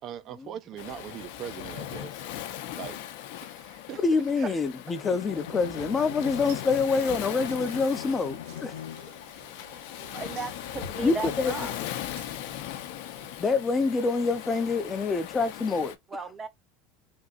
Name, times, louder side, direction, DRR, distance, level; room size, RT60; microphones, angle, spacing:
voice 1, 0.0-2.3 2.7-3.0 3.4-4.0 4.4-4.6, right 10 dB, 50° right, 0.4 m, -41 dB
Waves surf, 0.8-16.0, left 11 dB, 70° left, 0.7 m, -39 dB
voice 2, 4.0-8.8 11.0-11.5 13.4-16.0, left 4 dB, 25° left, 0.6 m, -26 dB
Bowed string instrument, 4.9-9.3, left 11 dB, 90° left, 0.3 m, -42 dB
sound 1, 6.2-15.8, right 6 dB, 75° right, 1.7 m, -54 dB
voice 3, 10.1-11.8 16.1-16.5, right 4 dB, 25° right, 0.8 m, -36 dB
3.5 x 2.6 x 2.5 m
supercardioid pair, 100°, 0 cm